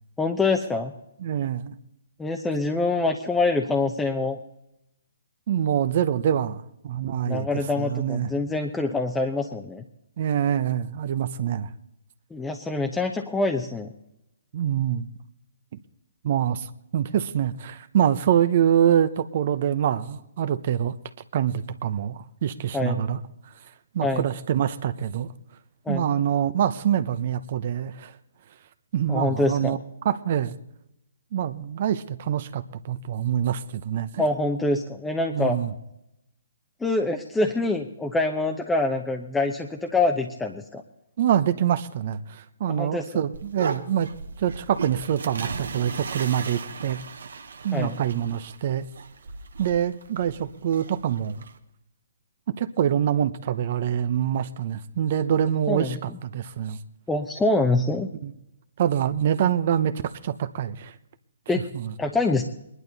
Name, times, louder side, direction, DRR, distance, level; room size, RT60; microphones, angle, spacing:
voice 1, 0.2-0.9 2.2-4.4 7.3-9.8 12.3-13.9 22.7-23.0 24.0-24.2 25.9-26.1 29.1-29.8 34.2-35.6 36.8-40.8 42.7-43.0 47.7-48.0 55.7-56.0 57.1-58.1 61.5-61.6 62.0-62.4, left 2 dB, 10° left, 3 dB, 0.9 m, -25 dB
voice 2, 1.2-1.7 5.5-7.5 7.8-8.3 10.2-11.7 14.5-15.1 15.7-15.8 16.2-21.0 21.3-23.2 23.4-23.5 23.9-25.3 25.9-28.2 28.9-29.8 30.0-30.5 31.3-34.2 35.3-35.7 41.2-44.1 44.4-47.0 47.6-48.8 49.6-51.4 52.5-56.8 58.2-58.3 58.8-61.0 61.5-61.9, right 9 dB, 50° right, 12 dB, 0.8 m, -25 dB
sound 1, 43.3-51.6, right 5 dB, 70° right, 1.3 m, -37 dB
21.0 x 11.0 x 4.1 m, 0.84 s
hypercardioid pair, 140°, 0 cm